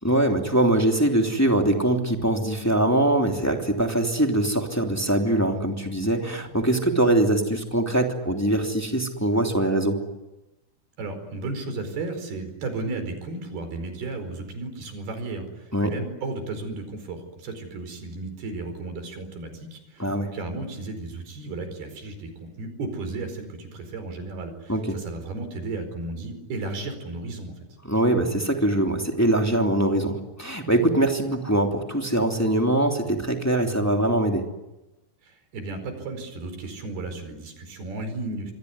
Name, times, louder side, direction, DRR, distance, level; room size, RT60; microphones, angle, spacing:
voice 1, 0.0-10.0 15.7-15.9 20.0-20.3 24.7-24.9 27.8-34.4, right 1 dB, 5° left, 2 dB, 2.2 m, -22 dB
voice 2, 11.0-27.6 35.2-38.5, right 3 dB, 85° right, 7 dB, 6.7 m, -34 dB
26.5 x 23.0 x 9.6 m, 1.0 s
omnidirectional pair, 4.4 m